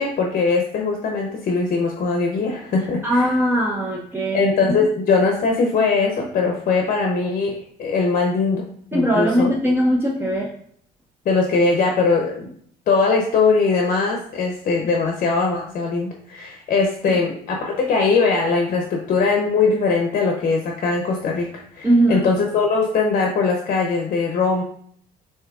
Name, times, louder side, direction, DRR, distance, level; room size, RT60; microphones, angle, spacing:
voice 1, 0.0-3.3 4.3-7.5 7.8-9.7 11.3-12.5 12.9-24.6, left 4 dB, 55° left, 2 dB, 0.6 m, -21 dB
voice 2, 3.0-4.7 8.9-10.5 17.0-17.2 21.8-22.3, right 1 dB, 15° right, -2 dB, 0.5 m, -20 dB
6.8 x 2.8 x 2.3 m, 0.62 s
cardioid pair, 110°, 17 cm